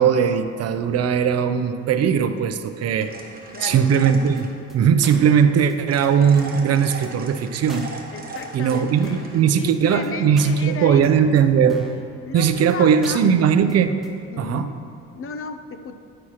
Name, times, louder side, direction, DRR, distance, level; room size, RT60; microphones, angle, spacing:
voice 1, 0.0-3.1 3.6-7.9 8.5-11.9 12.3-14.0 14.4-14.7, right 7 dB, 55° right, 10 dB, 0.5 m, -19 dB
sound 1, 3.0-4.6 5.9-9.4, right 3 dB, 30° right, 1.0 m, -38 dB
voice 2, 3.5-3.9 8.1-9.2 9.6-11.3 12.2-13.2 14.3-14.7 15.2-16.0, left 5 dB, 45° left, 8 dB, 0.5 m, -34 dB
sound 2, 3.7-4.0 4.4-4.5 4.7-4.8 5.0-5.4 5.7-5.8 6.0-6.1 6.4-6.7 7.0-7.1 7.4-7.5 7.7-8.0 8.4-8.5 8.7-8.8 9.0-9.3 9.7-9.8 10.0-10.1 10.4-10.7 11.0-11.1 11.4-11.5 11.7-12.0 12.4-12.5 12.7-12.8 13.0-13.4 13.7-13.8 14.0-14.1, equal, ahead, 1.0 m, -43 dB
9.6 x 6.2 x 2.9 m, 2.4 s
cardioid pair, 90°, 30 cm